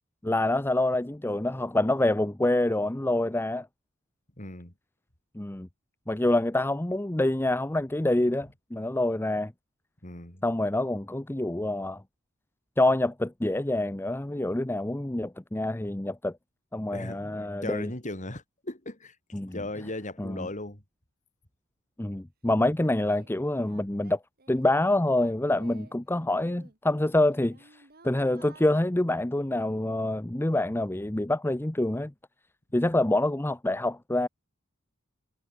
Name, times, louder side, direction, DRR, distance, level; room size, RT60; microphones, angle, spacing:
voice 1, 0.2-3.7 5.3-5.7 6.1-9.5 10.4-12.0 12.8-16.3 16.7-17.9 19.3-19.6 20.2-20.5 22.0-24.2 24.5-32.1 32.7-34.3, left 1 dB, 10° left, 0.6 m, -26 dB
voice 2, 4.4-4.7 10.0-10.4 16.9-20.8 32.8-32.9, left 2 dB, 35° left, 4.0 m, -38 dB
Singing, 22.2-22.3 22.8-26.0 26.3-28.6, right 3 dB, 45° right, 3.8 m, -55 dB
head